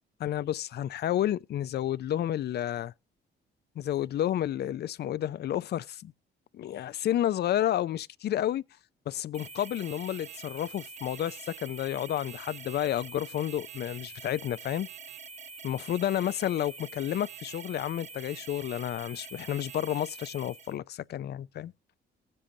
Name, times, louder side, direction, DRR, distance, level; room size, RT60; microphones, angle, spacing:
voice 1, 0.2-2.9 3.8-6.1 6.5-8.6 9.1-14.9 15.6-21.7, left 11 dB, 55° left, 0.5 m, -31 dB
sound 1, 9.3-20.8, right 6 dB, 35° right, 1.0 m, -45 dB
19.0 x 7.7 x 2.7 m
cardioid pair, 90°, 20 cm